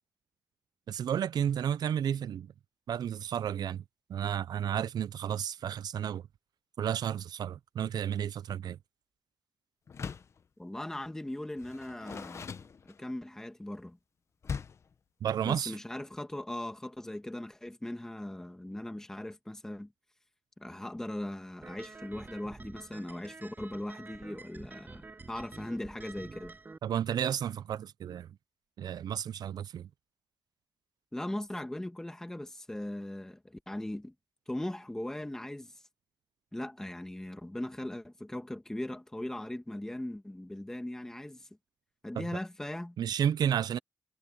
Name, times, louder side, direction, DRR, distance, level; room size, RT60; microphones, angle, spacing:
voice 1, 0.9-2.5 2.9-3.8 4.1-6.2 6.8-8.8 15.2-15.8 26.8-28.3 28.8-29.9 43.0-43.8, right 9 dB, 90° right, 0.4 m, -32 dB
Door, 9.9-10.4 11.6-13.3 14.4-14.9, left 6 dB, 45° left, 0.6 m, -40 dB
voice 2, 10.6-14.0 15.4-19.9 20.6-26.5 31.1-34.1 34.5-35.8 36.5-41.5 42.0-43.0, left 1 dB, 10° left, 1.5 m, -39 dB
sound 1, 21.6-26.8, right 3 dB, 30° right, 6.4 m, -48 dB
wide cardioid pair, 175°, 7 cm